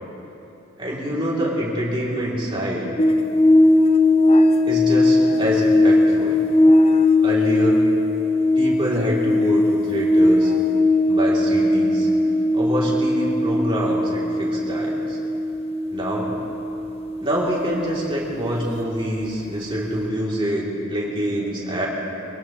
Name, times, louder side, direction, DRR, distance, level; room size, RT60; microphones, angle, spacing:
voice 1, 0.8-2.9 4.6-6.4 7.2-7.9 8.5-10.5 11.0-12.1 12.5-15.2 15.9-16.3 17.2-21.9, equal, 25° right, -5 dB, 3.0 m, -26 dB
sound 1, 3.0-19.5 19.8-20.0, left 2 dB, 30° left, 0.6 m, -19 dB
23.5 x 17.5 x 3.1 m, 3.0 s
head